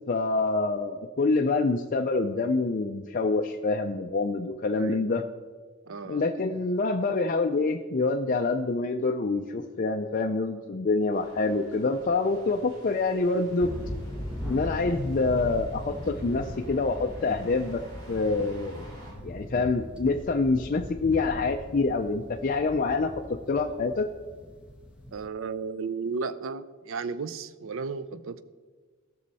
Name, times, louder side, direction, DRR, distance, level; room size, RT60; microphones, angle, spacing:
voice 1, 0.1-5.2 6.1-13.7 14.5-17.8 18.1-18.8 19.2-23.1 23.5-24.1, left 3 dB, 40° left, 3 dB, 0.5 m, -26 dB
voice 2, 4.8-5.2 5.9-6.2 25.1-28.4, right 5 dB, 65° right, 14 dB, 0.5 m, -34 dB
sound 1, 11.1-19.1, equal, 85° right, 3.8 m, -51 dB
sound 2, 13.6-25.3, left 1 dB, 5° right, 1.2 m, -39 dB
17.5 x 6.4 x 4.1 m, 1.4 s
head